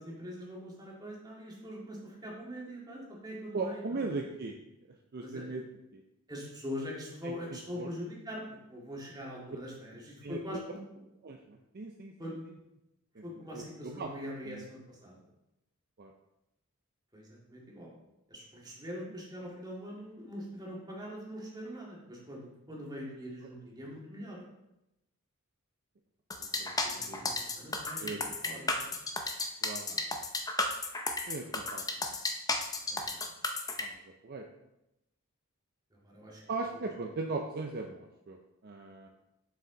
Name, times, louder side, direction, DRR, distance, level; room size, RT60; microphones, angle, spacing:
voice 1, 0.0-4.1 5.2-5.5 6.3-10.8 12.2-12.3 13.2-15.2 17.1-17.9 18.3-24.5 26.8-28.1 28.4-29.0 29.9-30.0 32.9-33.3 36.0-36.4, equal, 20° right, -4 dB, 2.0 m, -43 dB
voice 2, 3.5-4.6 5.1-5.6 5.9-6.0 7.2-7.9 10.2-10.4 11.2-12.1 13.2-14.1 14.4-14.6 16.0-16.1 26.4-27.4 28.0-28.6 29.6-29.9 31.3-32.1 33.8-34.5 36.5-39.1, right 3 dB, 45° right, 3 dB, 0.5 m, -39 dB
sound 1, 26.3-33.8, left 3 dB, 15° left, 0.6 m, -33 dB
7.1 x 6.1 x 3.8 m, 0.89 s
head